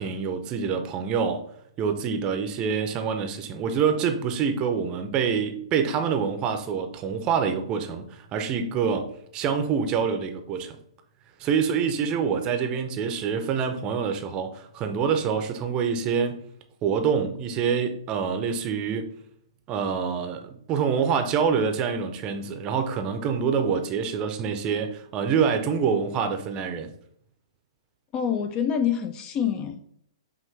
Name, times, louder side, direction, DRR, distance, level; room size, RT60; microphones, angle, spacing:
voice 1, 0.0-1.4 1.8-10.8 11.4-16.4 16.8-19.1 19.7-26.9, right 6 dB, 30° right, 0.6 m, -26 dB
voice 2, 28.1-29.8, left 8 dB, 25° left, 0.3 m, -26 dB
5.8 x 2.5 x 3.3 m
figure-of-eight pair, 115°, 3 cm